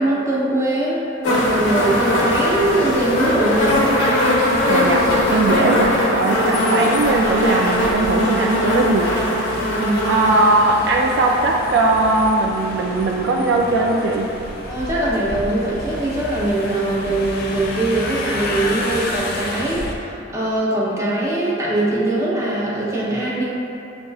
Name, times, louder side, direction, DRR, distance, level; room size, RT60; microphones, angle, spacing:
voice 1, 0.0-3.8 9.6-10.1 14.7-23.5, right 1 dB, 15° right, -6 dB, 0.7 m, -22 dB
sound 1, 1.2-12.3 13.3-13.4, left 1 dB, 90° left, 0.8 m, -20 dB
sound 2, 1.4-20.0, left 1 dB, 50° left, 0.5 m, -31 dB
voice 2, 4.7-9.1 10.0-14.3, right 2 dB, 60° right, 0 dB, 0.3 m, -19 dB
7.3 x 2.6 x 2.3 m, 2.9 s
head